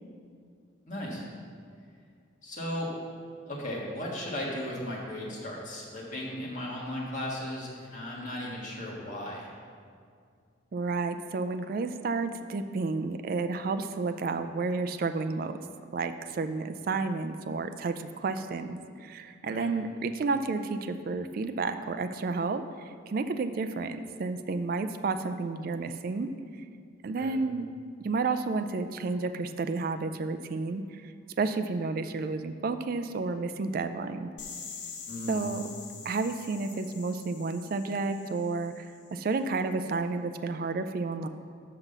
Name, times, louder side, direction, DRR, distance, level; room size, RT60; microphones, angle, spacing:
voice 1, 0.9-1.3 2.4-2.9 3.5-9.5 19.4-19.7 27.2-27.3 35.1-35.4, left 1 dB, 40° left, -5 dB, 1.7 m, -36 dB
voice 2, 10.7-15.6 15.9-26.3 27.0-27.7 28.0-31.1 31.4-34.3 35.3-35.6 36.1-41.3, right 3 dB, 45° right, 9 dB, 0.3 m, -31 dB
sound 1, 34.4-39.2, left 5 dB, 60° left, 0.8 m, -45 dB
6.0 x 5.8 x 6.6 m, 2.2 s
head